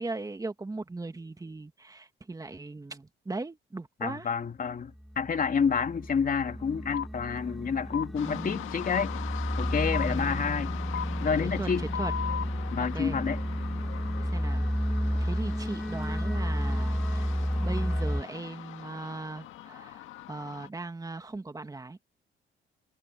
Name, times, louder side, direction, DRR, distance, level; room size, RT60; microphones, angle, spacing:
voice 1, 0.0-4.3 8.2-8.6 10.0-10.4 11.4-12.1 12.8-13.2 14.2-14.7 15.2-17.4 17.6-22.0, right 3 dB, 20° right, 1.8 m, -38 dB
voice 2, 4.0-9.1 9.6-10.7 11.2-11.9 12.7-13.4, left 6 dB, 45° left, 2.8 m, -29 dB
sound 1, 5.0-18.2, equal, ahead, 2.6 m, -31 dB
sound 2, 6.9-7.1 7.9-8.1 8.9-9.1 9.9-10.1 10.9-11.1 11.9-12.5, left 9 dB, 65° left, 0.9 m, -33 dB
sound 3, 8.2-20.7, left 14 dB, 90° left, 1.7 m, -42 dB
cardioid pair, 90°, 20 cm